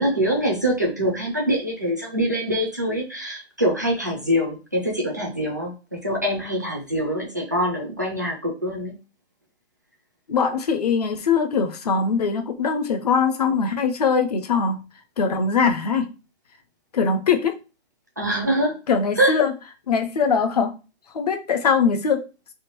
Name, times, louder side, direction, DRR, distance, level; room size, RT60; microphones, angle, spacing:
voice 1, 0.0-8.9 18.2-18.8 19.1-19.4, equal, 15° right, 0.4 m, -24 dB
voice 2, 10.3-14.8 15.2-16.1 16.9-17.6 18.9-19.5 19.9-20.7 21.1-22.2, left 5 dB, 35° left, 0.6 m, -21 dB
3.6 x 2.9 x 4.4 m
hypercardioid pair, 170°, 33 cm